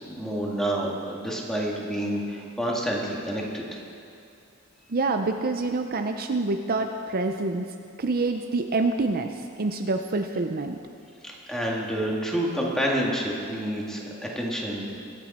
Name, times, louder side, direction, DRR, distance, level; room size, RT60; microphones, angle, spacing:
voice 1, 0.0-3.8 11.2-14.9, right 1 dB, ahead, -3 dB, 2.0 m, -28 dB
voice 2, 4.9-7.7 8.0-10.8, right 3 dB, 45° right, 5 dB, 0.6 m, -26 dB
23.5 x 9.0 x 4.3 m, 2.5 s
head